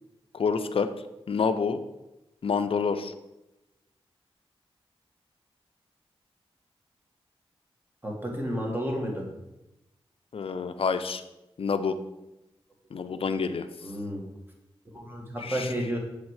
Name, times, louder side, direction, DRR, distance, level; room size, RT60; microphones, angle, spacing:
voice 1, 0.3-0.9 1.3-1.8 2.4-3.1 10.3-11.2 11.6-12.0 12.9-13.7 15.4-15.7, left 5 dB, 65° left, 9 dB, 0.5 m, -27 dB
voice 2, 8.0-9.2 13.8-14.3 14.9-16.0, equal, 20° right, 0 dB, 1.8 m, -31 dB
7.3 x 3.4 x 4.8 m, 0.94 s
cardioid pair, 55°, 10 cm